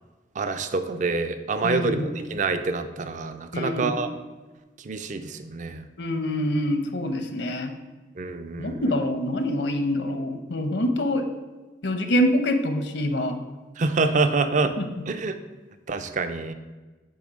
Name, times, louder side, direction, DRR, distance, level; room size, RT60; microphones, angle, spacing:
voice 1, 0.4-4.1 4.8-5.9 8.2-8.8 13.8-14.7 15.1-15.4 15.9-16.5, right 3 dB, 45° right, 9 dB, 0.4 m, -26 dB
voice 2, 1.6-2.1 3.5-3.9 6.0-7.7 8.6-11.3 11.8-13.4 14.8-14.9, left 1 dB, 75° left, 7 dB, 0.8 m, -25 dB
8.6 x 3.1 x 5.2 m, 1.2 s
head